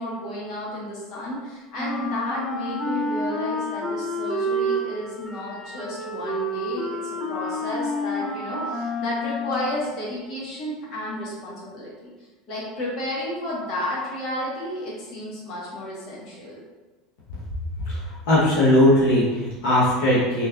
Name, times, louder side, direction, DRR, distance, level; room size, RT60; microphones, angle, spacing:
voice 1, 0.0-7.0 7.3-12.1 12.5-16.6, left 1 dB, 55° left, -6 dB, 1.3 m, -32 dB
Wind instrument woodwind instrument, 1.8-9.9, equal, 25° left, 0.5 m, -29 dB
voice 2, 18.3-20.5, left 1 dB, 75° left, -9 dB, 0.9 m, -19 dB
3.3 x 3.1 x 2.4 m, 1.3 s
supercardioid pair, 105°, 0 cm